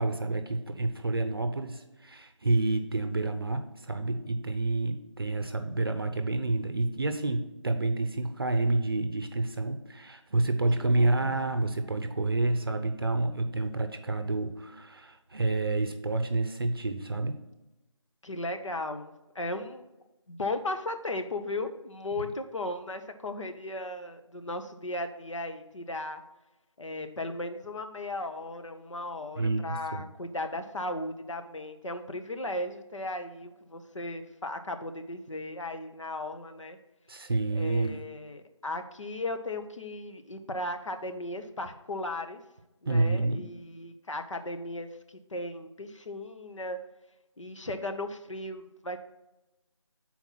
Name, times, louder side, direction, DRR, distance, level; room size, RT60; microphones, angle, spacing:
voice 1, 0.0-17.4 29.4-30.0 37.1-38.0 42.9-43.4, right 2 dB, 50° right, 7 dB, 0.6 m, -29 dB
voice 2, 10.8-11.6 18.2-19.8 20.3-26.2 26.8-36.8 37.5-42.4 42.8-44.9 45.3-46.8 47.4-49.0, left 2 dB, 70° left, 7 dB, 0.9 m, -36 dB
5.8 x 4.3 x 5.8 m, 1.0 s
figure-of-eight pair, 165°, 16 cm